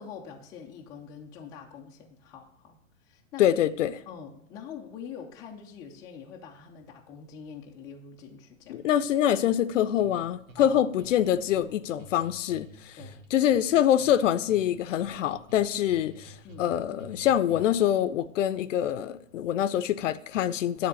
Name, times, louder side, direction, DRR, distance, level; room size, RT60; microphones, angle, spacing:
voice 1, 0.0-2.8 3.0-3.5 4.1-8.9 10.6-10.8 11.6-11.7 13.0-13.2 16.4-16.8, left 7 dB, 10° left, 0.4 m, -44 dB
voice 2, 3.4-4.0 8.7-13.0 13.3-20.9, left 10 dB, 65° left, 0.6 m, -25 dB
sound 1, 10.0-17.9, right 2 dB, 85° right, 1.6 m, -50 dB
9.6 x 3.6 x 7.0 m
hypercardioid pair, 130°, 40 cm